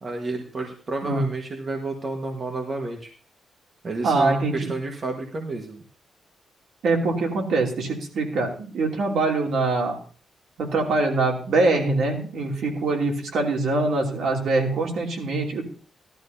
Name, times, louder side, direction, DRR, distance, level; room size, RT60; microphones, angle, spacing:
voice 1, 0.0-3.1 3.8-5.8, right 2 dB, 30° right, 2 dB, 1.4 m, -30 dB
voice 2, 4.0-4.7 6.8-10.0 10.6-15.6, right 3 dB, 65° right, 1 dB, 2.7 m, -23 dB
16.5 x 12.0 x 2.7 m, 0.39 s
wide cardioid pair, 175°, 0 cm